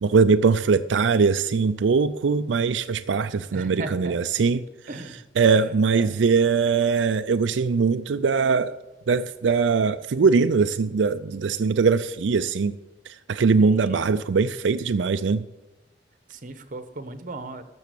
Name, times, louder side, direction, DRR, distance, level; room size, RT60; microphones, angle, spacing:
voice 1, 0.0-4.7 5.4-8.7 9.1-12.8 13.1-15.5, right 5 dB, 90° right, 0.4 m, -21 dB
voice 2, 3.5-4.2 4.9-6.1 13.6-14.0 16.3-17.6, right 2 dB, 45° right, 1.1 m, -37 dB
12.5 x 7.0 x 8.3 m
head